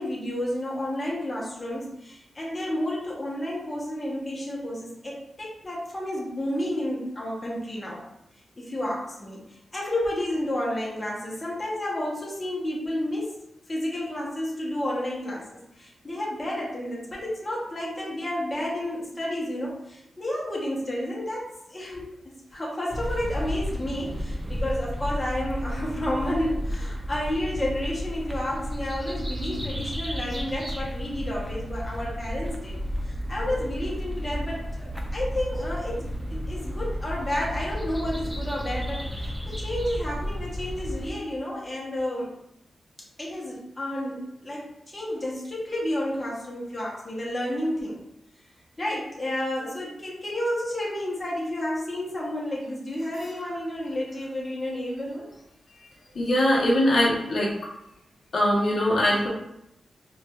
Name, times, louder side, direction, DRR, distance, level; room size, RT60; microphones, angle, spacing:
voice 1, 0.0-8.0 8.6-15.5 15.7-32.8 33.0-42.3 43.2-48.0 48.8-55.3, left 1 dB, 20° left, -5 dB, 0.8 m, -31 dB
sound 1, 22.9-41.1, equal, 5° right, 0.4 m, -32 dB
sound 2, 27.4-34.5, left 1 dB, 85° left, 0.9 m, -45 dB
voice 2, 56.1-57.6 58.3-59.3, left 1 dB, 60° left, -4 dB, 0.8 m, -22 dB
4.3 x 2.3 x 2.2 m, 0.82 s
wide cardioid pair, 130°, 0 cm